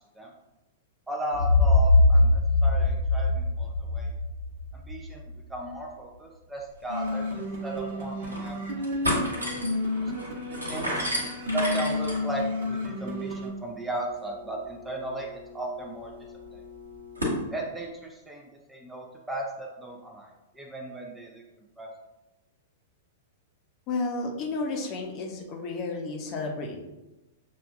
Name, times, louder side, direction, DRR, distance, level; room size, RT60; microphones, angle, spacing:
voice 1, 1.1-4.1 4.7-5.2 5.5-8.6 10.0-10.1 10.7-11.1 11.5-15.3 15.5-16.1 16.5-16.6 17.5-21.4 21.8-21.9, right 2 dB, 10° right, 0 dB, 0.5 m, -36 dB
sound 1, 1.3-5.2, left 2 dB, 70° left, 0.9 m, -22 dB
sound 2, 6.9-13.5, left 2 dB, 55° right, 1.1 m, -31 dB
sound 3, 7.0-7.1 7.4-7.5 8.0-8.5 8.8-17.4, equal, 80° right, 1.2 m, -35 dB
voice 2, 23.9-26.8, left 3 dB, 35° left, 0 dB, 0.8 m, -32 dB
6.6 x 2.4 x 2.4 m, 1.0 s
figure-of-eight pair, 100°, 0 cm